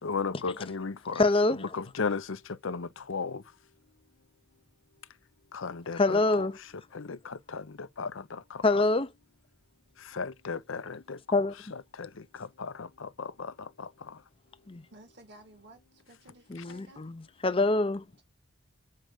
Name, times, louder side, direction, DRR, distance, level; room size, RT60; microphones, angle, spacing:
voice 1, 0.0-1.2 1.6-3.4 5.5-6.5 6.9-8.6 10.0-11.2 11.7-14.2, left 4 dB, 70° left, 0.7 m, -36 dB
voice 2, 1.2-1.7 6.0-6.6 8.6-9.1 11.3-11.5 14.7-14.8 16.5-18.0, left 2 dB, 25° left, 0.6 m, -25 dB
voice 3, 14.9-17.1, right 1 dB, 55° right, 2.0 m, -54 dB
7.7 x 4.7 x 6.6 m
head